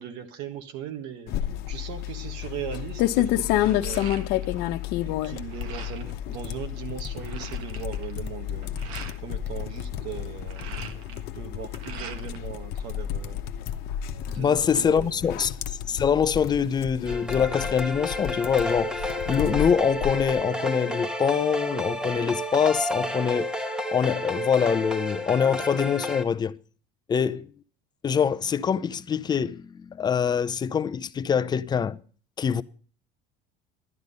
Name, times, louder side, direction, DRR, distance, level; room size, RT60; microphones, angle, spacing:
voice 1, 0.0-1.3 1.7-4.2 5.0-8.7 9.2-13.5 14.2-15.5 27.2-27.3, right 9 dB, 70° right, 1.5 m, -39 dB
sound 1, 1.3-20.4, left 12 dB, 60° left, 1.0 m, -31 dB
sound 2, 3.5-4.7 5.0-6.2 6.7-6.8 7.0-9.2 10.2-12.5 12.8-13.7, right 7 dB, 90° right, 1.5 m, -43 dB
voice 2, 14.4-15.5 15.9-23.5 23.9-26.6 27.1-27.5 28.0-32.0 32.4-32.6, left 7 dB, 25° left, 0.5 m, -24 dB
sound 3, 17.1-26.2, left 1 dB, 5° right, 1.3 m, -31 dB
12.0 x 9.7 x 5.4 m
supercardioid pair, 120°, 18 cm